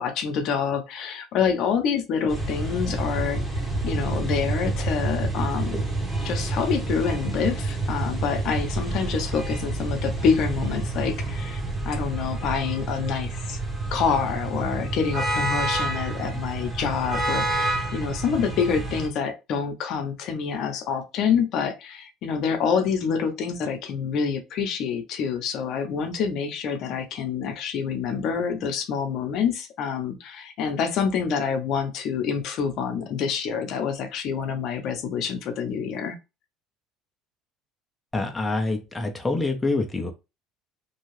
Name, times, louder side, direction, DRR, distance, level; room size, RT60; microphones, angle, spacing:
voice 1, 0.0-5.9 6.2-13.6 13.9-36.2, left 6 dB, 60° left, 7 dB, 0.6 m, -27 dB
sound 1, 2.3-19.1, right 2 dB, 5° right, 0.9 m, -28 dB
voice 2, 38.1-40.1, left 3 dB, 15° left, 4 dB, 0.5 m, -26 dB
2.7 x 2.3 x 3.1 m, 0.26 s
cardioid pair, 115°, 0 cm